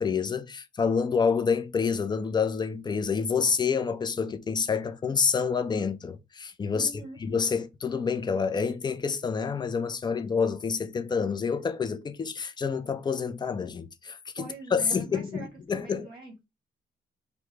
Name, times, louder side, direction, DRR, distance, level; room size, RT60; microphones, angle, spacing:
voice 1, 0.0-6.9 7.2-16.1, left 5 dB, 20° left, 0.3 m, -28 dB
voice 2, 6.7-7.2 14.4-16.5, right 2 dB, 25° right, 0.9 m, -43 dB
2.2 x 2.0 x 3.0 m
cardioid pair, 90°, 20 cm